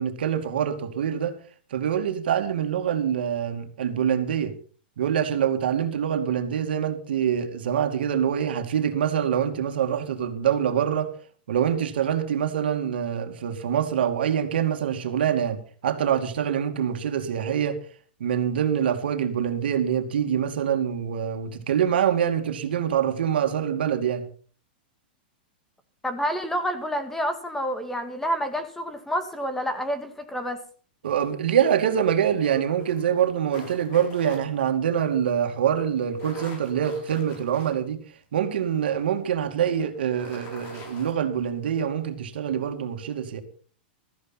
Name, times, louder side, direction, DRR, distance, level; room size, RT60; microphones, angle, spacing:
voice 1, 0.0-1.4 1.7-4.5 5.0-11.1 11.5-17.8 18.2-24.3 31.0-38.0 38.3-43.4, right 9 dB, 80° right, 2.5 m, -25 dB
voice 2, 26.0-30.6, equal, 5° left, 1.7 m, -28 dB
sound 1, 32.8-34.4 36.0-37.7 38.2-38.3 39.9-41.2, left 3 dB, 40° left, 6.6 m, -45 dB
15.5 x 14.0 x 4.2 m
supercardioid pair, 150°, 5 cm